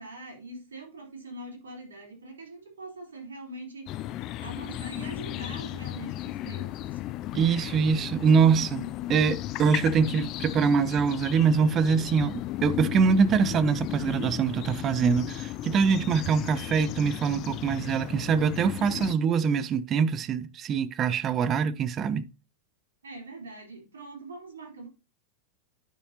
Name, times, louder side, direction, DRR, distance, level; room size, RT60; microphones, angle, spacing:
voice 1, 0.0-7.0 23.0-24.9, right 2 dB, 70° right, 3.5 m, -43 dB
sound 1, 3.9-19.1, left 14 dB, 35° left, 0.5 m, -35 dB
voice 2, 7.3-22.3, right 6 dB, 30° right, 0.6 m, -24 dB
9.7 x 6.6 x 2.8 m
figure-of-eight pair, 90°, 0 cm